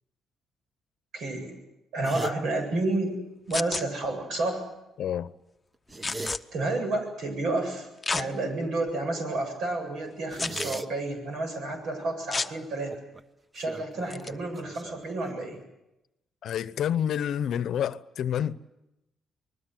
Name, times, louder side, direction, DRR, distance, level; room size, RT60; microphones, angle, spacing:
voice 1, 1.1-1.6 1.9-3.2 3.5-4.6 6.5-12.9 13.5-15.6, right 2 dB, 75° right, 8.0 m, -30 dB
sound 1, 2.0-2.4 5.7-6.4 10.3-10.9 12.9-13.2 13.5-15.6, right 2 dB, 25° right, 1.1 m, -38 dB
sound 2, 3.5-3.8 6.0-6.4 8.0-8.3 8.9-9.0 10.4-10.8 12.3-12.5 14.1-14.3, left 3 dB, 25° left, 0.8 m, -30 dB
voice 2, 5.0-5.3 16.4-18.6, left 9 dB, 70° left, 0.8 m, -28 dB
27.0 x 21.0 x 7.8 m
cardioid pair, 90°, 0 cm